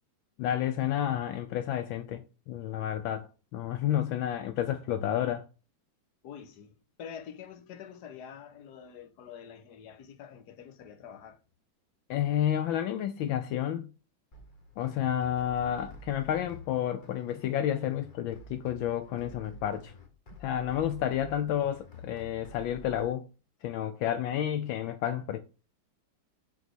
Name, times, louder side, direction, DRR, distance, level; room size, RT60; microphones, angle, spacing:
voice 1, 0.4-3.3 3.5-5.4 12.1-13.9 14.8-19.9 20.4-23.2 23.6-25.4, left 10 dB, 75° left, 1.4 m, -30 dB
voice 2, 6.2-11.4, left 8 dB, 60° left, 1.5 m, -46 dB
sound 1, 14.3-23.0, left 2 dB, 30° left, 1.2 m, -49 dB
7.1 x 4.3 x 6.0 m
omnidirectional pair, 2.2 m